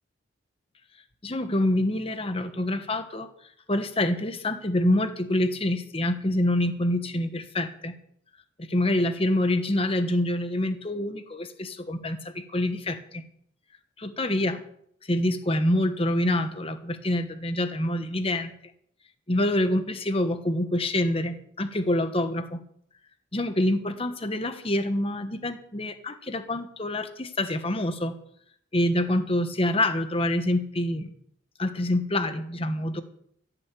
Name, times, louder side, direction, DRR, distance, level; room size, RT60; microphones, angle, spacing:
voice 1, 1.2-3.3 3.7-7.9 8.6-13.2 14.0-14.6 15.1-18.5 19.3-22.6 23.3-28.2 28.7-31.1 31.6-33.0, left 1 dB, 30° left, 9 dB, 1.2 m, -26 dB
16.0 x 7.0 x 8.5 m, 0.69 s
head